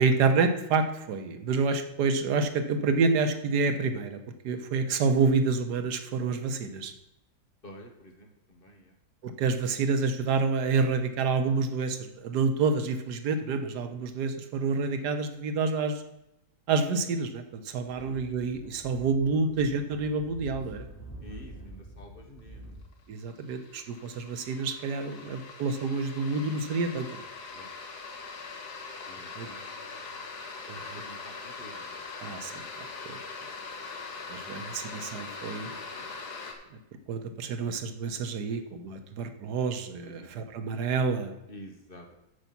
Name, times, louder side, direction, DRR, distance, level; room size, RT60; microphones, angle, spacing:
voice 1, 0.0-6.9 9.2-16.0 16.7-20.9 23.1-27.1 29.3-29.5 30.7-31.0 32.2-33.2 34.3-35.7 37.1-41.3, right 4 dB, 85° right, 8 dB, 1.5 m, -28 dB
voice 2, 7.6-9.0 18.0-18.4 21.2-22.7 25.2-25.3 27.5-27.7 29.1-30.3 30.9-32.0 35.7-36.1 40.0-40.3 41.5-42.1, equal, 35° left, 3 dB, 1.2 m, -49 dB
Speech / Wind, 17.9-22.8, right 1 dB, 15° left, 3.4 m, -47 dB
sound 1, 22.4-22.5 22.9-36.5, left 4 dB, 75° left, 1.8 m, -42 dB
8.1 x 7.1 x 5.9 m, 0.85 s
omnidirectional pair, 1.7 m